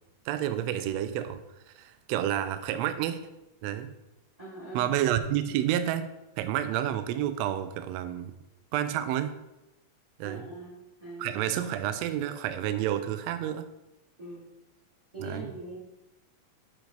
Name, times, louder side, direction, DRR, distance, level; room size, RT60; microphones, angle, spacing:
voice 1, 0.2-1.4 1.7-3.2 3.6-3.9 4.7-6.1 6.4-8.3 8.7-9.4 10.2-10.5 11.2-13.7 15.2-15.5, right 11 dB, 80° right, 11 dB, 1.6 m, -30 dB
voice 2, 4.4-4.9 10.2-10.7 11.0-11.5 14.2-14.5 15.1-15.8, right 1 dB, 15° right, -6 dB, 1.7 m, -42 dB
8.7 x 4.8 x 3.8 m, 0.93 s
omnidirectional pair, 3.4 m